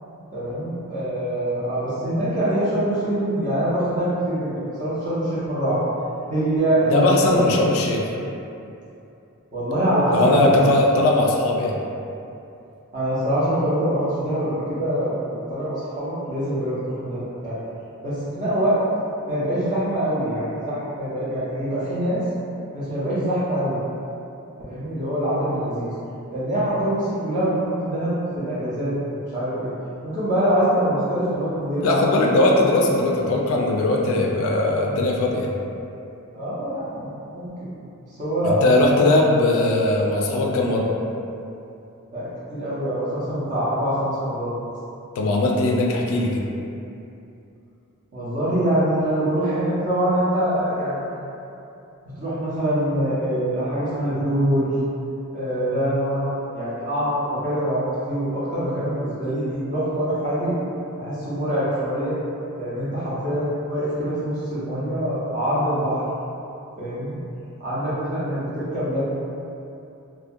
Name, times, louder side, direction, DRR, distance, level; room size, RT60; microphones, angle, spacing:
voice 1, 0.3-5.8 6.3-7.4 9.5-10.6 12.9-17.7 18.0-18.8 19.3-22.2 22.7-23.8 24.7-25.9 26.3-29.7 30.0-32.0 36.3-37.7 38.1-39.0 42.1-44.5 48.1-51.2 52.0-54.7 55.3-60.6 61.0-62.2 62.6-66.0 66.8-67.2 67.6-69.0, right 1 dB, 35° right, -11 dB, 0.6 m, -24 dB
voice 2, 6.9-8.1 10.1-11.8 31.8-35.5 38.4-40.9 45.2-46.5, left 2 dB, 65° left, -1 dB, 0.3 m, -19 dB
2.3 x 2.2 x 2.6 m, 2.7 s
head